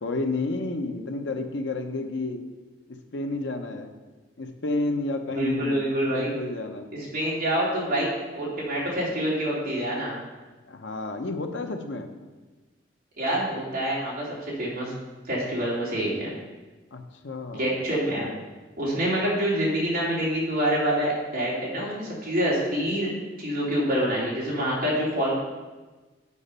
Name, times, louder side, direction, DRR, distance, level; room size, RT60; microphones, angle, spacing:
voice 1, 0.0-2.4 2.9-3.9 4.4-6.9 10.7-12.1 16.9-17.8, left 2 dB, 80° left, 5 dB, 0.8 m, -31 dB
voice 2, 5.3-6.3 6.9-10.1 13.2-14.3 14.6-14.9 15.3-16.3 17.5-18.3 18.8-23.1 23.4-25.4, right 1 dB, 55° right, -6 dB, 2.9 m, -26 dB
8.5 x 5.0 x 5.5 m, 1.2 s
head